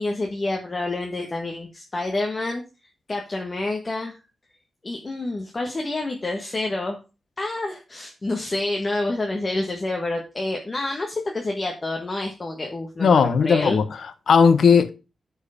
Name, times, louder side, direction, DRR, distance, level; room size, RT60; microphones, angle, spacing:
voice 1, 0.0-2.6 3.1-4.2 4.8-7.0 7.4-13.8, left 2 dB, 30° left, 1.4 m, -28 dB
voice 2, 13.0-14.9, left 6 dB, 70° left, 1.1 m, -17 dB
9.8 x 4.8 x 5.1 m
wide cardioid pair, 125°, 0 cm